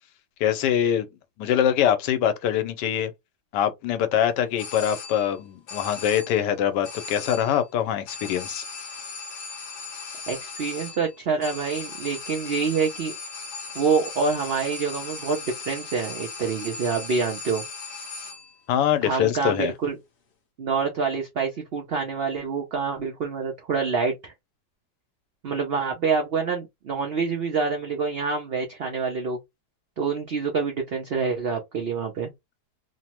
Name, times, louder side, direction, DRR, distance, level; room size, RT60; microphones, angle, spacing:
voice 1, 0.4-1.1 1.4-3.1 3.5-8.6 18.7-19.7, left 10 dB, 85° left, 1.2 m, -23 dB
sound 1, 4.6-5.4 5.7-6.5 6.8-7.7 8.1-18.6, left 4 dB, 55° left, 0.8 m, -38 dB
voice 2, 10.3-13.1 13.7-17.6 19.0-20.0 20.6-24.3 25.4-29.4 30.0-32.3, right 5 dB, 80° right, 0.5 m, -26 dB
3.1 x 2.0 x 2.9 m
omnidirectional pair, 1.8 m